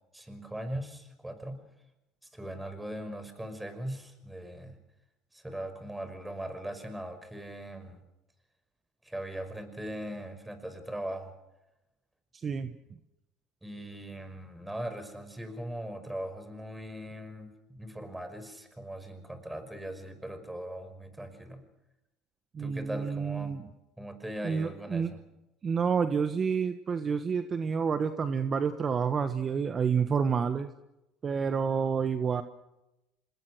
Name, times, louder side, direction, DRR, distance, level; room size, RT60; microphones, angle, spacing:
voice 1, 0.1-1.6 2.3-4.8 5.3-8.0 9.0-11.3 13.6-21.6 22.6-23.6 24.0-25.2, right 1 dB, 10° right, 9 dB, 5.7 m, -40 dB
voice 2, 22.5-23.6 24.4-25.1 25.6-30.7 31.2-32.4, right 6 dB, 35° right, 9 dB, 1.4 m, -29 dB
27.0 x 20.5 x 6.4 m, 0.92 s
supercardioid pair, 85°, 0 cm